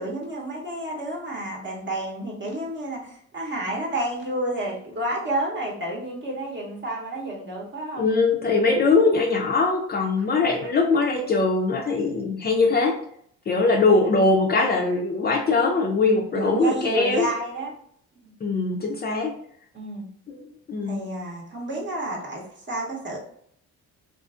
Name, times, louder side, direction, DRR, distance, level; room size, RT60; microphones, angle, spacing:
voice 1, 0.0-8.0 10.2-10.3 10.6-10.8 16.3-17.7 18.2-18.3 19.7-20.1 20.9-23.2, right 1 dB, 40° right, -3 dB, 0.8 m, -30 dB
voice 2, 8.0-13.0 13.5-17.3 18.4-19.3 20.3-21.0, left 3 dB, 35° left, 0 dB, 0.4 m, -21 dB
2.5 x 2.4 x 2.3 m, 0.65 s
cardioid pair, 90°, 30 cm